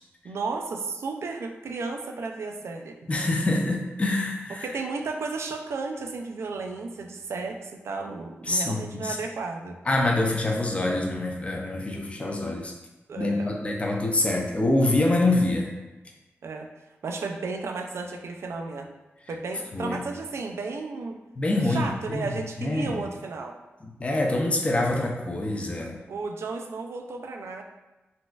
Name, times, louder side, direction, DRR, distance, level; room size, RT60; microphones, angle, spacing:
voice 1, 0.2-3.0 4.6-9.8 13.1-13.5 16.4-16.7 17.0-18.9 19.3-21.2 21.6-23.5 26.1-27.6, right 4 dB, 80° right, 4 dB, 0.3 m, -33 dB
voice 2, 3.1-4.7 8.4-9.2 9.9-12.7 13.2-15.7 19.7-20.0 21.4-22.3 22.6-23.0 23.8-26.0, left 2 dB, 30° left, 0 dB, 0.5 m, -25 dB
4.0 x 2.4 x 2.3 m, 1.1 s
wide cardioid pair, 140°, 5 cm